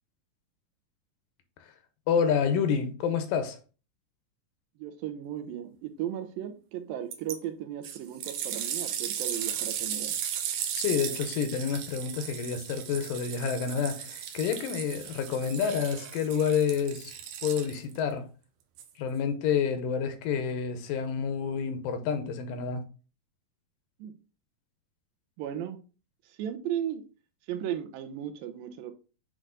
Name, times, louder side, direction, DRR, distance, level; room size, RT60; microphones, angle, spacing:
voice 1, 2.1-3.6 10.7-18.3 19.0-22.8, left 7 dB, 80° left, 2.4 m, -29 dB
voice 2, 4.8-10.1 24.0-24.1 25.4-25.8 26.3-27.0 27.5-28.9, right 10 dB, 90° right, 2.5 m, -36 dB
sound 1, 7.1-7.4 7.8-18.0 18.8-18.9, right 9 dB, 75° right, 2.1 m, -36 dB
7.7 x 3.4 x 3.8 m
omnidirectional pair, 4.1 m